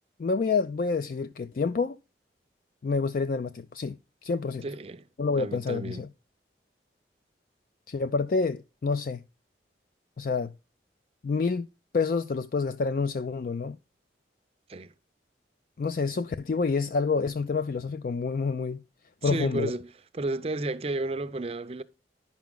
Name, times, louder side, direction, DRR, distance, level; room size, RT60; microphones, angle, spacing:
voice 1, 0.2-2.0 2.8-4.6 5.2-6.1 7.9-9.2 10.2-10.5 11.2-11.7 11.9-13.8 15.8-18.8 19.2-19.7, left 4 dB, 50° left, 0.3 m, -28 dB
voice 2, 4.6-5.1 5.3-6.0 14.7-14.9 19.2-19.9 20.1-21.8, right 2 dB, 35° right, 0.5 m, -32 dB
10.0 x 5.9 x 3.7 m
head